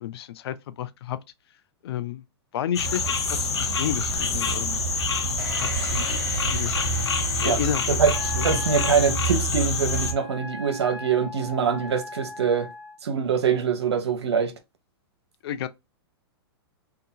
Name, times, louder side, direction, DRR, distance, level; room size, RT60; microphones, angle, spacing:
voice 1, 0.0-1.2 1.8-2.2 2.5-4.9 5.6-6.7 7.4-8.5 15.4-15.7, left 10 dB, 70° left, 0.4 m, -32 dB
sound 1, 2.7-10.1, left 2 dB, 90° left, 0.8 m, -26 dB
sound 2, 5.4-9.2, right 5 dB, 30° right, 0.8 m, -40 dB
Wind instrument woodwind instrument, 8.1-13.0, left 2 dB, ahead, 0.5 m, -40 dB
voice 2, 8.4-12.7 13.0-14.5, right 6 dB, 90° right, 0.7 m, -24 dB
2.7 x 2.2 x 2.7 m
hypercardioid pair, 125°, 14 cm